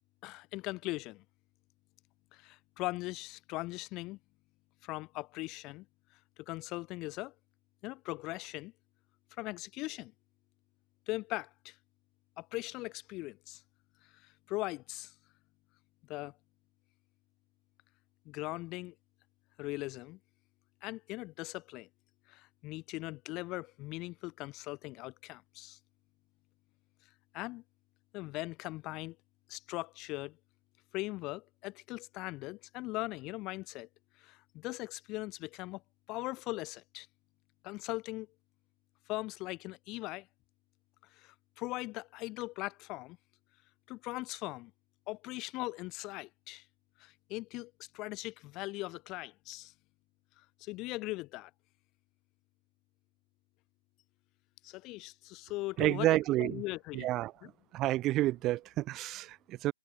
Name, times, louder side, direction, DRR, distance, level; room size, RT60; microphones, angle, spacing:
voice 1, 0.2-1.2 2.3-4.2 4.8-5.9 6.4-7.3 7.8-8.7 9.4-10.1 11.1-11.8 12.4-13.6 14.0-15.1 16.0-16.4 18.3-18.9 19.6-20.2 20.8-21.9 22.3-25.8 27.3-27.6 28.1-29.2 29.5-30.4 30.9-33.9 34.2-35.8 36.1-37.1 37.6-38.3 39.1-40.3 41.1-43.2 43.9-44.7 45.1-46.7 47.0-49.7 50.4-51.5 54.6-56.1 56.4-57.1 57.4-57.5, left 21 dB, 25° left, 1.7 m, -40 dB
voice 2, 55.8-56.6 56.9-57.3 57.7-59.7, right 16 dB, 20° right, 0.4 m, -30 dB
hypercardioid pair, 150°, 0 cm